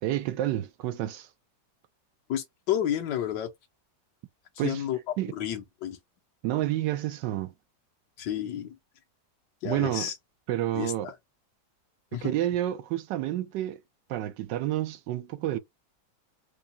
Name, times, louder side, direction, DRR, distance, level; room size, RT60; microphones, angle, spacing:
voice 1, 0.0-1.3 4.6-4.8 5.2-5.3 6.4-7.5 9.6-10.1 10.5-11.1 12.2-13.8 14.1-15.6, right 13 dB, 90° right, 1.3 m, -29 dB
voice 2, 2.3-3.5 4.6-5.0 5.3-6.0 8.2-8.8 9.6-10.2 10.7-11.1 12.1-12.3, left 10 dB, 80° left, 1.4 m, -31 dB
4.8 x 2.2 x 2.7 m
omnidirectional pair, 1.9 m